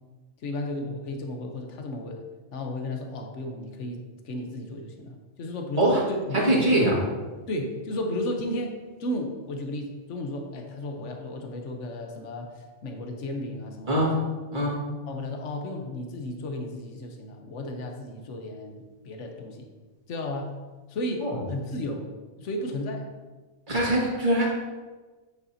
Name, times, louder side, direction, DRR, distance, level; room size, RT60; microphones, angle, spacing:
voice 1, 0.4-2.2 2.5-6.9 7.5-14.2 14.5-14.8 15.1-19.7 20.1-20.6 20.9-22.1 22.4-23.1, left 1 dB, 70° left, 3 dB, 1.3 m, -34 dB
voice 2, 6.3-7.0 13.9-14.2 14.5-14.8 21.2-21.3 23.7-24.5, right 1 dB, 40° right, -5 dB, 2.3 m, -22 dB
8.5 x 8.1 x 2.8 m, 1.3 s
omnidirectional pair, 1.3 m